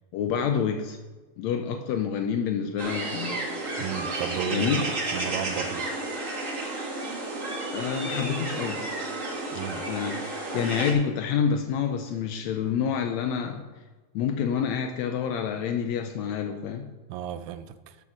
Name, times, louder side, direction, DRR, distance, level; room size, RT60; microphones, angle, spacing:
voice 1, 0.1-1.0 1.4-3.4 4.5-4.8 7.7-8.8 9.9-13.6 14.1-16.9, left 7 dB, 90° left, 5 dB, 1.5 m, -28 dB
sound 1, 2.8-10.9, right 2 dB, 40° right, 1.1 m, -32 dB
voice 2, 3.8-4.7 5.1-5.9 9.5-9.9 17.1-18.0, right 9 dB, 85° right, 12 dB, 2.3 m, -33 dB
12.0 x 6.3 x 6.0 m, 1.2 s
omnidirectional pair, 4.0 m